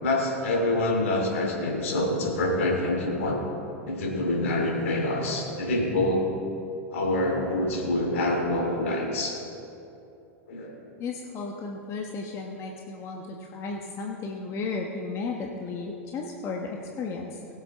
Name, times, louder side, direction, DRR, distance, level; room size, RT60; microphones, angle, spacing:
voice 1, 0.0-3.4 3.8-6.3 6.9-9.4 10.5-10.8, left 1 dB, 70° left, 1 dB, 3.0 m, -26 dB
voice 2, 11.0-17.4, left 4 dB, 40° left, 0 dB, 1.2 m, -34 dB
20.5 x 7.9 x 3.7 m, 2.8 s
hypercardioid pair, 90°, 7 cm